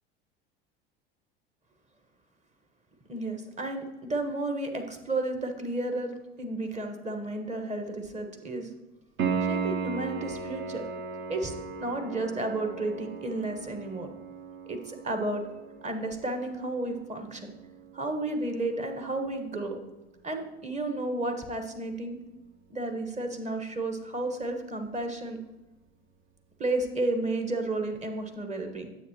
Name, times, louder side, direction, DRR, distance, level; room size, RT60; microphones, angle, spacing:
voice 1, 3.1-8.7 9.4-10.8 11.3-11.5 11.8-14.1 14.7-15.4 15.8-17.6 17.9-19.8 20.2-22.2 22.7-25.4 26.6-28.9, right 2 dB, 20° right, 5 dB, 1.4 m, -32 dB
Piano, 9.2-19.8 23.2-23.3, right 5 dB, 40° right, 1.0 m, -37 dB
9.1 x 7.7 x 3.0 m, 1.0 s
hypercardioid pair, 75°, 31 cm